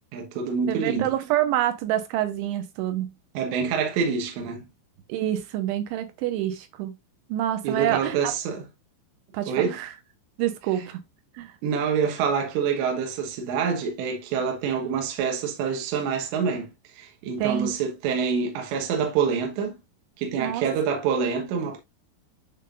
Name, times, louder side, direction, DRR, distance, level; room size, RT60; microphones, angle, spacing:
voice 1, 0.1-1.1 3.3-4.7 7.6-8.7 9.5-9.8 10.8-10.9 11.6-19.8 20.2-21.8, right 6 dB, 75° right, 3.3 m, -26 dB
voice 2, 0.7-3.1 5.1-7.0 7.3-8.3 9.3-9.9 10.4-11.0 11.4-11.5 17.4-17.7 20.4-20.6, right 12 dB, 90° right, 3.2 m, -27 dB
10.5 x 3.8 x 2.4 m
omnidirectional pair, 5.5 m